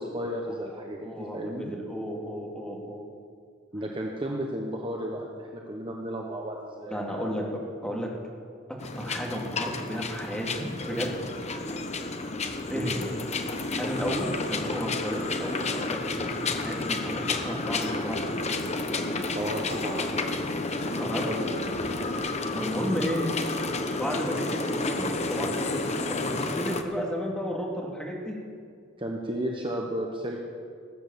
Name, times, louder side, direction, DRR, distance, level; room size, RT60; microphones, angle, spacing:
voice 1, 0.0-1.7 3.7-7.2 12.7-13.0 19.3-20.2 21.3-21.5 29.0-30.4, equal, 25° right, 0 dB, 1.1 m, -33 dB
voice 2, 0.8-3.0 6.9-8.1 8.9-11.1 12.7-13.1 13.8-16.2 16.5-18.4 21.0-21.3 22.3-23.2 24.0-28.4, equal, 5° left, -2 dB, 2.5 m, -33 dB
sound 1, 8.8-26.8, left 3 dB, 35° left, 0.9 m, -31 dB
18.5 x 8.8 x 7.1 m, 2.2 s
head